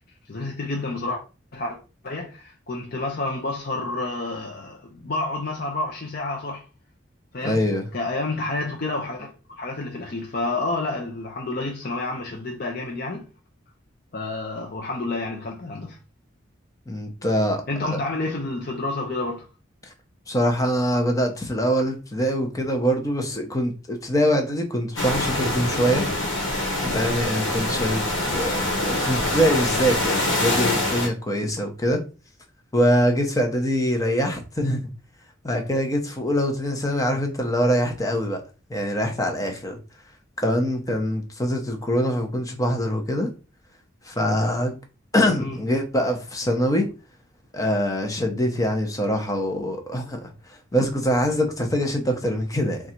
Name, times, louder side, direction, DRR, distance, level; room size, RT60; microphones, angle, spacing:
voice 1, 0.3-1.2 1.5-1.8 2.0-6.6 7.3-7.6 7.9-13.3 14.1-16.0 17.7-19.5 45.3-45.6, left 2 dB, 50° left, 0.7 m, -29 dB
voice 2, 7.4-7.9 16.9-17.6 17.9-18.0 20.3-26.1 26.9-32.0 32.7-34.9 35.4-38.4 38.7-39.8 40.4-43.3 44.1-44.8 45.1-46.9 47.5-50.3 50.7-52.8, equal, 15° left, 0.7 m, -24 dB
sound 1, 25.0-31.1, left 1 dB, 75° left, 1.2 m, -25 dB
3.8 x 2.4 x 4.3 m
head